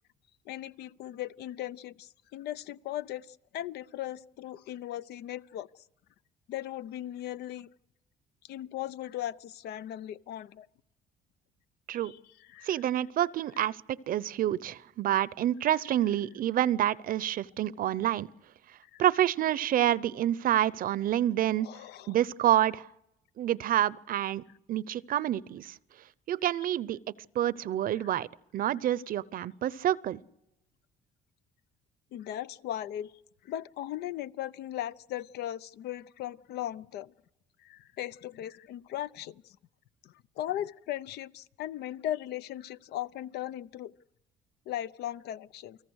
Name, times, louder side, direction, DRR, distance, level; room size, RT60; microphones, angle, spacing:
voice 1, 0.5-5.7 6.5-7.7 8.4-10.7 11.9-12.8 18.8-19.0 21.6-22.2 28.1-28.2 32.1-33.1 33.4-37.1 37.6-39.6 40.0-43.9 44.7-45.8, left 12 dB, 75° left, 0.7 m, -38 dB
voice 2, 12.6-18.3 19.0-21.7 22.1-22.9 23.4-24.4 24.7-25.7 26.3-27.0 27.3-28.3 28.5-30.2, right 12 dB, 55° right, 0.7 m, -28 dB
29.0 x 18.5 x 6.4 m
cardioid pair, 110°, 17 cm